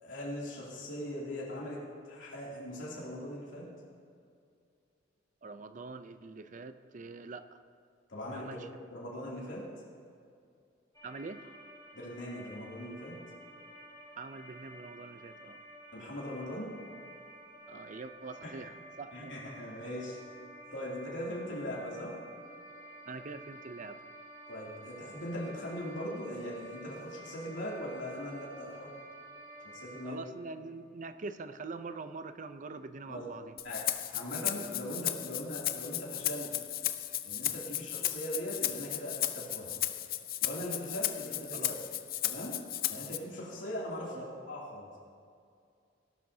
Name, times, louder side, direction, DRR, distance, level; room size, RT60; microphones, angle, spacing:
voice 1, 0.0-1.8 2.0-3.7 8.1-8.6 8.9-9.6 11.9-13.2 15.9-16.7 18.4-18.5 19.1-20.2 20.7-22.1 24.5-28.9 29.7-30.3 33.1-33.2 33.6-36.5 37.2-39.7 40.4-41.7 42.2-42.6 42.9-44.9, equal, 85° left, -5 dB, 2.7 m, -40 dB
voice 2, 5.4-7.6 8.3-8.7 11.0-11.4 14.2-15.6 17.7-19.3 23.1-24.0 30.0-33.6 41.5-41.8 44.1-44.2, right 3 dB, 45° right, 11 dB, 0.5 m, -44 dB
sound 1, 10.9-30.0, right 1 dB, 20° left, 2.1 m, -51 dB
Rattle (instrument), 33.6-43.2, left 13 dB, 50° left, 0.5 m, -35 dB
17.0 x 11.5 x 2.7 m, 2.3 s
head